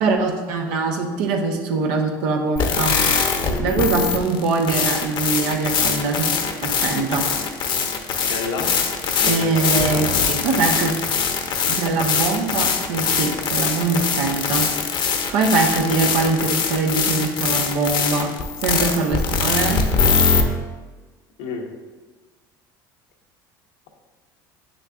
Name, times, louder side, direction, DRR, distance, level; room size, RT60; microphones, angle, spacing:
voice 1, 0.0-3.0 3.6-6.3 6.6-7.3 9.2-10.9 11.7-14.7 15.3-18.3 18.6-19.8, right 4 dB, 75° right, 2 dB, 1.1 m, -22 dB
sound 1, 2.6-20.4, left 5 dB, 50° left, 1.0 m, -22 dB
voice 2, 3.5-3.8 8.2-8.7 9.2-10.0 21.4-21.7, left 4 dB, 75° left, 1 dB, 1.2 m, -29 dB
9.0 x 6.4 x 2.5 m, 1.3 s
hypercardioid pair, 80°, 11 cm